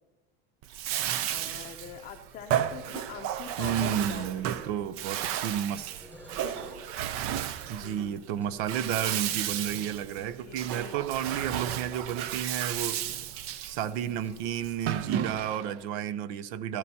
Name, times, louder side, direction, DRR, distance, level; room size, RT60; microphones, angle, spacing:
Bathtub (filling or washing), 0.6-15.8, right 11 dB, 45° right, 0.5 m, -33 dB
voice 1, 1.3-4.3 4.6-4.8 6.3-6.7 7.1-8.2 9.7-11.3, left 8 dB, 25° left, 3 dB, 0.6 m, -45 dB
sound 1, 1.5-1.9 3.4-4.2 5.7-7.1 8.3-10.1 11.3-11.8 12.2-12.4 14.2-14.3, left 1 dB, 5° right, 5.2 m, -52 dB
voice 2, 3.6-5.9 7.7-13.0 13.7-16.8, right 9 dB, 80° right, 16 dB, 0.7 m, -32 dB
16.5 x 13.5 x 2.8 m, 1.2 s
cardioid pair, 155°, 32 cm